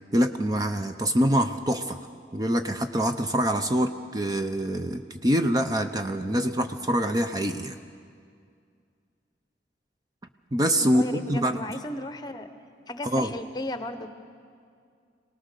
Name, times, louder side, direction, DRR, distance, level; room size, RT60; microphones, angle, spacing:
voice 1, 0.1-2.0 2.3-7.8 10.5-11.6 13.0-13.3, equal, 20° right, 7 dB, 0.6 m, -25 dB
voice 2, 10.8-12.5 12.9-14.1, left 1 dB, 25° left, 9 dB, 1.0 m, -35 dB
25.0 x 18.5 x 6.7 m, 2.2 s
head